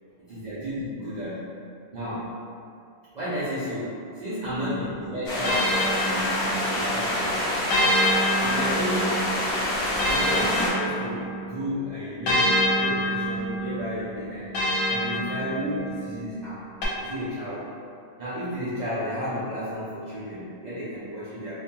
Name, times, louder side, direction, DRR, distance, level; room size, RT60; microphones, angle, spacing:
voice 1, 0.3-1.5 1.9-2.4 3.1-7.4 8.4-9.3 10.1-14.5 14.9-16.6 17.0-17.7 18.2-21.5, equal, 75° right, -12 dB, 0.4 m, -32 dB
sound 1, 4.4-6.9 7.7-11.5 12.3-16.0 16.8-16.9, equal, 85° left, 1.1 m, -27 dB
sound 2, 5.3-10.7, left 1 dB, 50° left, 0.8 m, -27 dB
2.6 x 2.2 x 2.8 m, 2.4 s
omnidirectional pair, 1.5 m